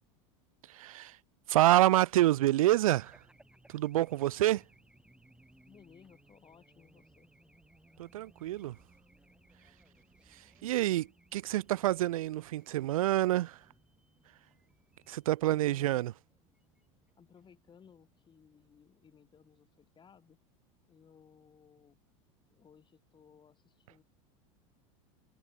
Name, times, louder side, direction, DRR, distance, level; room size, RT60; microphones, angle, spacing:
voice 1, 0.7-1.2 1.5-3.1 3.7-4.6 8.0-8.8 10.6-13.6 15.1-16.1, right 15 dB, 90° right, 0.5 m, -27 dB
Race car auto racing / Alarm, 2.9-19.8, right 1 dB, 5° right, 5.2 m, -65 dB
voice 2, 5.7-7.3 15.4-16.1 17.2-20.4 20.9-22.0 22.5-24.0, left 7 dB, 25° left, 7.7 m, -60 dB
hypercardioid pair, 105°, 17 cm